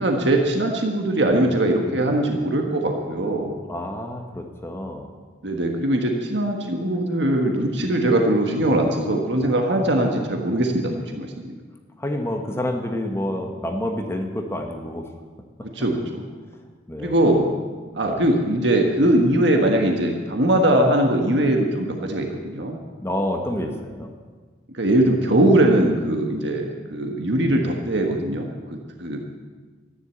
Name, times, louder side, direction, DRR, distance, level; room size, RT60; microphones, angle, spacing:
voice 1, 0.0-3.5 5.4-11.5 15.7-16.2 17.0-17.5 17.9-22.8 23.6-23.7 24.7-28.5 29.0-29.2, right 1 dB, 70° right, 2 dB, 1.6 m, -21 dB
voice 2, 3.7-5.1 12.0-15.1 16.9-17.3 18.0-18.2 23.0-24.1, left 1 dB, 15° left, 3 dB, 1.3 m, -28 dB
14.0 x 11.0 x 8.3 m, 1.4 s
head